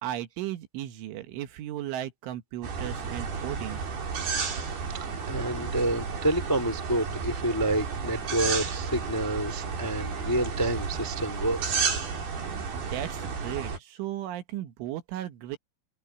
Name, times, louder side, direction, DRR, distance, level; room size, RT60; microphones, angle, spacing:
voice 1, 0.0-3.8 12.3-15.6, right 13 dB, 75° right, 3.7 m, -36 dB
sound 1, 2.6-13.8, right 5 dB, 50° right, 6.3 m, -32 dB
voice 2, 4.9-11.6, right 1 dB, 10° left, 1.0 m, -28 dB
omnidirectional pair, 5.9 m